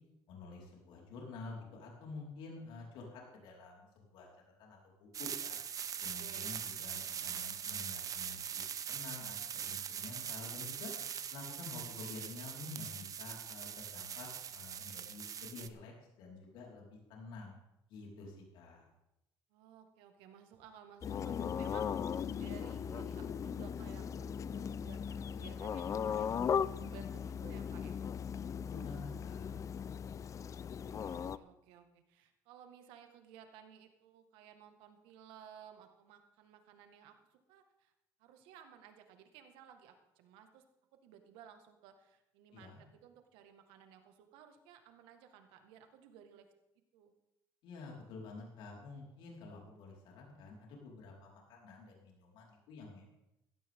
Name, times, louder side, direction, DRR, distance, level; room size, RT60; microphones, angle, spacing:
voice 1, 0.3-4.3 4.6-5.6 6.0-8.6 8.9-10.9 11.3-17.5 17.9-18.9 28.4-29.5 42.5-42.8 47.6-53.1, left 3 dB, 75° left, -2 dB, 4.8 m, -49 dB
sound 1, 5.1-15.7, right 8 dB, 45° right, 0.9 m, -42 dB
voice 2, 6.0-7.4 19.5-28.0 30.8-37.9 38.2-40.6 41.0-46.5 46.9-47.1, right 8 dB, 85° right, 6 dB, 1.8 m, -57 dB
sound 2, 21.0-31.4, left 7 dB, 40° left, 0.6 m, -38 dB
17.0 x 13.5 x 3.8 m, 0.87 s
supercardioid pair, 95°, 8 cm